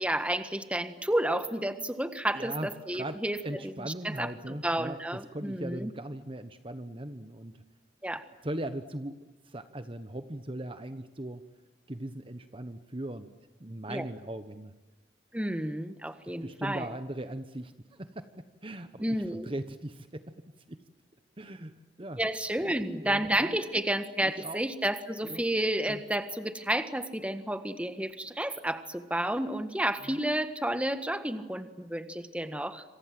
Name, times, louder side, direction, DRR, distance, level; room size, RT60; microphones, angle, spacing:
voice 1, 0.0-3.4 3.6-5.9 8.0-8.3 13.9-14.1 15.3-16.9 19.0-19.5 22.2-32.8, right 1 dB, 5° right, 9 dB, 1.5 m, -31 dB
voice 2, 2.3-7.6 8.4-9.2 9.4-11.4 11.9-13.3 13.6-14.7 16.4-20.4 20.7-20.8 21.4-22.2 22.6-22.7 23.0-23.5 24.2-24.6 25.2-25.4 25.9-26.0 30.0-30.2, right 1 dB, 30° right, 10 dB, 1.2 m, -39 dB
27.0 x 26.5 x 7.8 m, 1.1 s
head